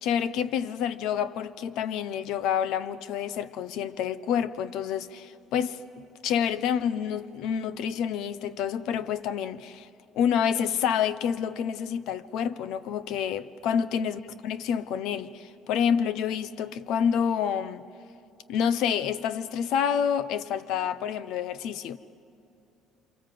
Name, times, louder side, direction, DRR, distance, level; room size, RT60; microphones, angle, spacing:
voice 1, 0.0-9.9 10.1-17.8 18.5-22.0, left 8 dB, 65° left, 0.8 m, -28 dB
28.5 x 27.0 x 7.7 m
cardioid pair, 175°, 0 cm